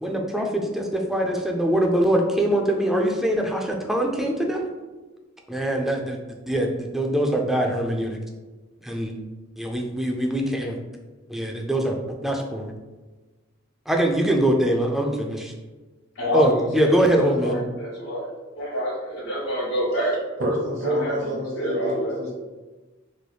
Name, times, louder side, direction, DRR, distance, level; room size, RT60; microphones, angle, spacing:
voice 1, 0.0-4.7 5.5-6.2 6.5-8.2 8.8-9.2 9.6-10.8 11.3-11.9 12.2-12.7 13.9-15.5 16.3-17.6, right 1 dB, ahead, 1 dB, 0.3 m, -23 dB
voice 2, 16.1-18.3 18.5-20.2 20.8-22.2, equal, 85° left, -10 dB, 1.4 m, -27 dB
voice 3, 20.4-21.9 22.2-22.3, right 1 dB, 70° right, -5 dB, 0.8 m, -27 dB
3.2 x 3.0 x 2.2 m, 1.2 s
head